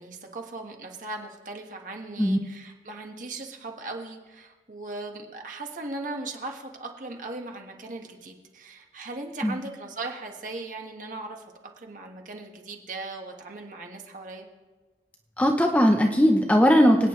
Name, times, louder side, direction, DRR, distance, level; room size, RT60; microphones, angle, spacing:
voice 1, 0.0-11.5 11.8-14.5, right 2 dB, 45° right, 2 dB, 1.6 m, -38 dB
voice 2, 15.4-17.1, equal, 10° left, 2 dB, 0.7 m, -19 dB
26.0 x 9.3 x 3.2 m, 1.2 s
head